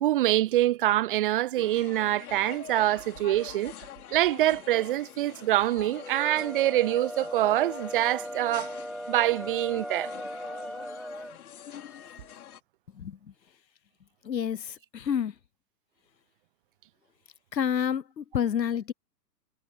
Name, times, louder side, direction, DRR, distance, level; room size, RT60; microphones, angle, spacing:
voice 1, 0.0-3.7 4.1-8.7 9.1-10.1, right 14 dB, 35° right, 0.6 m, -25 dB
sound 1, 1.6-12.6, left 9 dB, 60° left, 4.1 m, -45 dB
sound 2, 6.0-11.4, equal, ahead, 2.6 m, -38 dB
voice 2, 14.3-14.6 14.9-15.3 17.5-18.9, left 8 dB, 80° left, 0.9 m, -28 dB
figure-of-eight pair, 115°, 49 cm